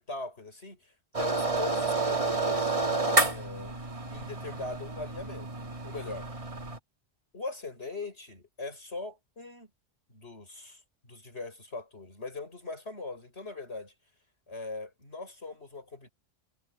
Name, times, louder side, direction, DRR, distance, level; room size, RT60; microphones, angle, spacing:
voice 1, 0.0-3.8 4.1-5.5 5.8-6.3 7.3-9.7 10.1-13.9 14.5-16.1, left 3 dB, 55° left, 6.1 m, -41 dB
sound 1, 1.1-6.8, right 3 dB, 25° right, 2.1 m, -30 dB
omnidirectional pair, 1.3 m